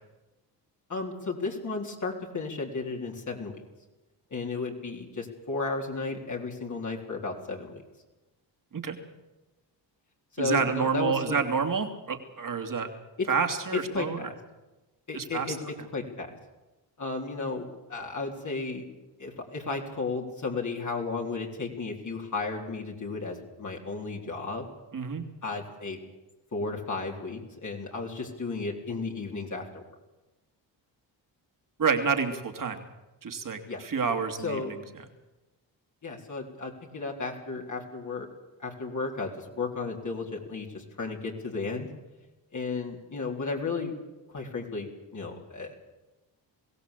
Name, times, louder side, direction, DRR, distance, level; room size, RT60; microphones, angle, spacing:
voice 1, 0.9-3.5 4.3-7.8 10.3-11.4 13.2-13.3 13.7-14.3 15.1-16.4 17.0-18.8 19.2-24.7 25.4-26.0 26.5-29.8 33.7-33.8 34.4-34.7 36.0-38.3 38.6-41.9 42.5-43.9 44.3-45.7, left 3 dB, 40° left, 0 dB, 3.9 m, -34 dB
voice 2, 10.4-12.9 13.3-14.3 15.1-15.6 24.9-25.2 31.8-32.8 33.2-34.8, right 5 dB, 45° right, 5 dB, 3.0 m, -28 dB
22.0 x 16.0 x 8.4 m, 1.1 s
cardioid pair, 85°, 44 cm